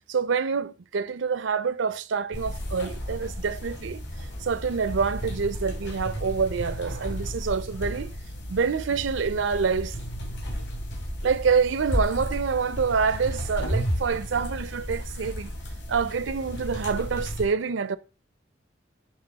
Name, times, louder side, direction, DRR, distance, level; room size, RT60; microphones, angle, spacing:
voice 1, 0.1-4.0 4.4-8.1 8.5-10.0 11.2-15.5 15.9-18.0, right 5 dB, 85° right, 0.5 m, -26 dB
sound 1, 2.3-17.4, equal, 70° left, 3.2 m, -33 dB
10.5 x 3.8 x 4.0 m
head